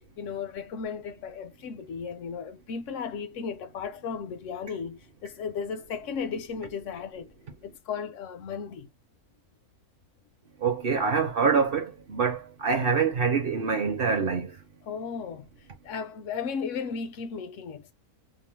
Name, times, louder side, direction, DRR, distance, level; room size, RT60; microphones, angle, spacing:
voice 1, 0.2-7.3 7.6-8.9 14.8-15.5 15.8-17.9, left 6 dB, 65° left, 0.8 m, -35 dB
voice 2, 10.6-14.6, right 5 dB, 55° right, 0.7 m, -25 dB
2.8 x 2.0 x 3.0 m
omnidirectional pair, 1.6 m